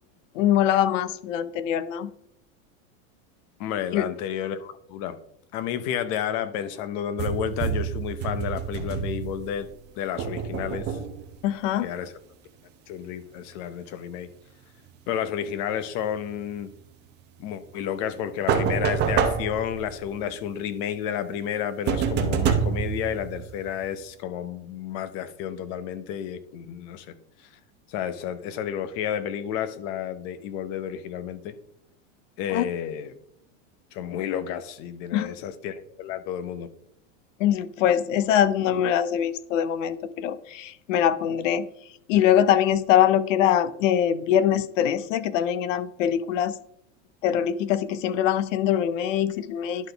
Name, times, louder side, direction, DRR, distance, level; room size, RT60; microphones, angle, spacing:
voice 1, 0.3-2.1 3.9-4.1 11.4-11.9 32.5-32.6 35.1-35.3 37.4-41.7 42.1-46.6 47.2-49.9, left 10 dB, 80° left, 15 dB, 0.7 m, -23 dB
voice 2, 3.6-5.2 5.5-9.7 10.0-11.0 11.8-12.1 12.9-14.3 15.1-16.7 17.4-27.1 27.9-31.6 32.4-33.1 33.9-36.7, left 9 dB, 40° left, 12 dB, 0.7 m, -31 dB
sound 1, 7.2-9.6 10.2-11.4 18.5-20.1 21.9-23.8, right 6 dB, 25° right, 0.7 m, -27 dB
11.0 x 4.0 x 3.4 m, 0.73 s
supercardioid pair, 155°, 38 cm